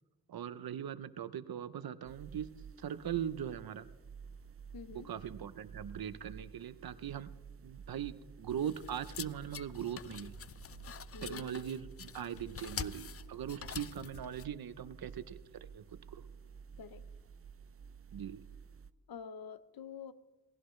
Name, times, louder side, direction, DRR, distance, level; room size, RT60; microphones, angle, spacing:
voice 1, 0.3-2.5 2.8-3.9 4.9-7.3 7.6-10.3 11.2-15.4 15.7-15.8 16.1-16.2 18.1-18.4, right 9 dB, 90° right, 14 dB, 0.7 m, -40 dB
sound 1, 2.0-18.9, right 6 dB, 40° right, 0.5 m, -52 dB
voice 2, 4.7-5.1 11.1-11.4 16.8-17.0 19.1-20.1, left 6 dB, 85° left, 14 dB, 0.8 m, -47 dB
sound 2, 8.5-14.4, left 8 dB, 40° left, 0.4 m, -46 dB
18.5 x 16.0 x 3.2 m, 1.2 s
wide cardioid pair, 70°, 35 cm